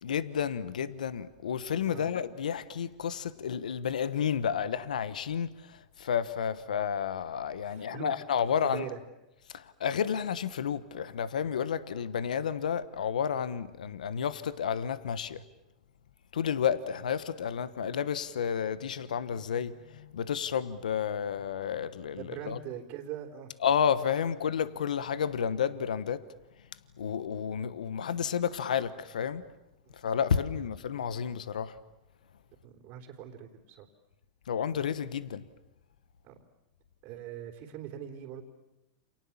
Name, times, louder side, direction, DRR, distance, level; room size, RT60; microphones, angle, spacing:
voice 1, 0.0-8.9 9.5-15.4 16.3-22.6 23.6-26.2 27.0-29.4 29.9-31.8 34.5-35.4, left 8 dB, 80° left, 1.2 m, -31 dB
voice 2, 7.6-8.2 8.6-9.0 22.2-23.5 29.8-29.9 32.6-33.9 36.2-36.4 37.0-38.4, right 10 dB, 50° right, 3.5 m, -42 dB
29.5 x 28.0 x 7.3 m
hypercardioid pair, 105°, 4 cm